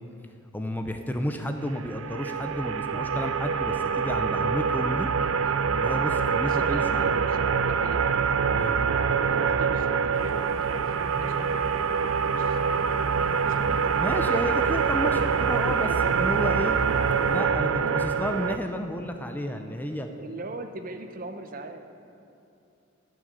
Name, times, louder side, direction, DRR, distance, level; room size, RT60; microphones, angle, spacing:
voice 1, 0.5-5.1 5.7-7.0 8.5-8.7 14.0-16.8 17.3-20.1, equal, 10° left, 5 dB, 0.5 m, -31 dB
sound 1, 1.8-18.6, right 6 dB, 90° right, 0.5 m, -25 dB
voice 2, 5.4-5.7 6.4-8.0 9.3-12.9 13.5-14.0 15.7-16.3 17.8-18.0 20.1-21.8, right 2 dB, 45° right, 7 dB, 0.8 m, -41 dB
sound 2, 10.1-17.4, left 2 dB, 75° left, 0.7 m, -43 dB
12.0 x 6.4 x 8.1 m, 2.8 s
head